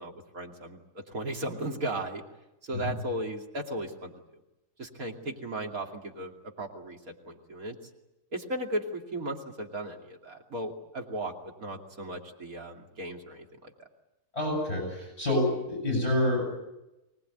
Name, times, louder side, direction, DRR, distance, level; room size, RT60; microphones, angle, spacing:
voice 1, 0.0-2.2 2.6-4.2 4.8-7.8 8.3-13.7, right 1 dB, 65° right, 1 dB, 3.1 m, -36 dB
voice 2, 14.3-16.6, left 1 dB, 45° left, 0 dB, 7.5 m, -28 dB
24.0 x 19.5 x 9.2 m, 0.96 s
omnidirectional pair, 1.6 m